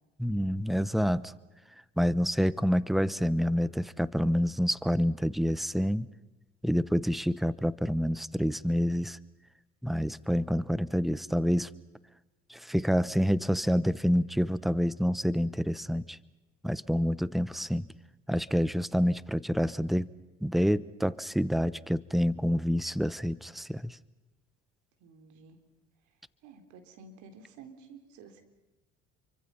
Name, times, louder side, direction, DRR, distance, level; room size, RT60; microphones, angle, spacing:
voice 1, 0.2-1.3 2.0-6.1 6.6-9.2 9.8-11.7 12.5-16.2 16.6-17.9 18.3-20.1 20.4-24.0, equal, ahead, 18 dB, 1.0 m, -27 dB
voice 2, 25.0-25.6 26.0-28.4, right 5 dB, 75° right, 7 dB, 3.8 m, -52 dB
29.0 x 24.5 x 5.7 m, 1.1 s
supercardioid pair, 70°, 30 cm